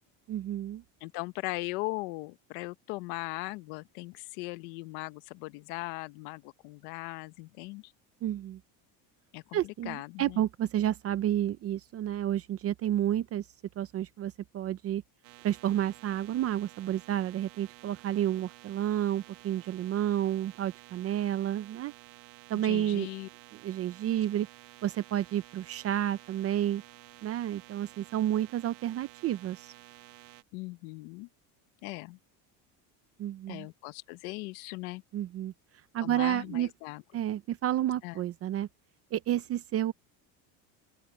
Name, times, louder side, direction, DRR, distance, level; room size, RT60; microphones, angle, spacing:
voice 1, 0.3-0.8 8.2-8.6 9.5-13.5 13.8-15.0 15.4-21.9 22.5-23.1 23.6-24.5 24.8-26.8 27.2-29.7 33.2-33.7 35.1-35.5 35.9-36.7 37.1-38.7 39.1-39.9, right 11 dB, 35° right, 0.6 m, -30 dB
voice 2, 1.0-7.9 9.3-10.4 22.6-23.3 30.5-31.3 31.8-32.2 33.5-35.0 36.0-37.0 38.0-38.2, left 22 dB, 90° left, 1.0 m, -39 dB
sound 1, 15.2-30.4, right 21 dB, 70° right, 1.7 m, -53 dB
open air
cardioid pair, 155°, 42 cm